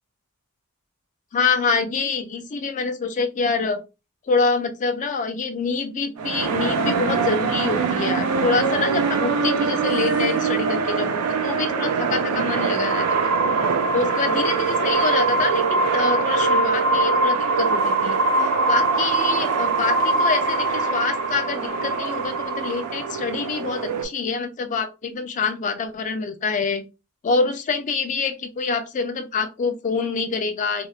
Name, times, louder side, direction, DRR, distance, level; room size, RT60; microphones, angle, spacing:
voice 1, 1.3-3.8 4.3-13.3 13.9-18.2 18.7-26.8 27.2-30.9, left 4 dB, 35° left, 0.3 m, -26 dB
sound 1, 6.2-24.0, right 3 dB, 85° right, 0.5 m, -22 dB
2.7 x 2.0 x 2.3 m
head